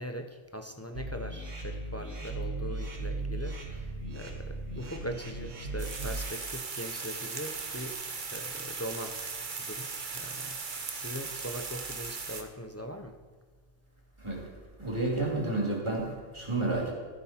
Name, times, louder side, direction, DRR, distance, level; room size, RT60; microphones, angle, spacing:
voice 1, 0.0-8.0 8.3-9.1 9.5-13.2, equal, 15° left, 5 dB, 0.5 m, -41 dB
sound 1, 0.9-6.3, right 2 dB, 80° right, 2.2 m, -37 dB
sound 2, 5.8-12.4, right 5 dB, 40° right, 1.1 m, -38 dB
voice 2, 14.2-14.5 14.8-16.9, right 2 dB, 20° right, -2 dB, 2.9 m, -30 dB
14.5 x 11.5 x 4.4 m, 1.5 s
omnidirectional pair, 1.3 m